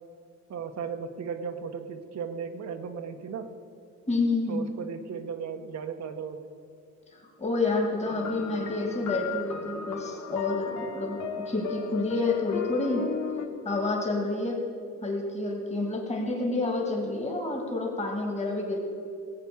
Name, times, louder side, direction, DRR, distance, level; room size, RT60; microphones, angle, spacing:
voice 1, 0.5-3.5 4.5-6.4, right 6 dB, 60° right, 5 dB, 1.1 m, -36 dB
voice 2, 4.1-4.7 7.4-13.0 13.6-14.6 15.0-18.8, left 2 dB, 20° left, 0 dB, 2.4 m, -29 dB
sound 1, 8.1-13.5, left 8 dB, 70° left, 1.1 m, -36 dB
16.0 x 8.0 x 7.0 m, 2.4 s
cardioid pair, 90°, 30 cm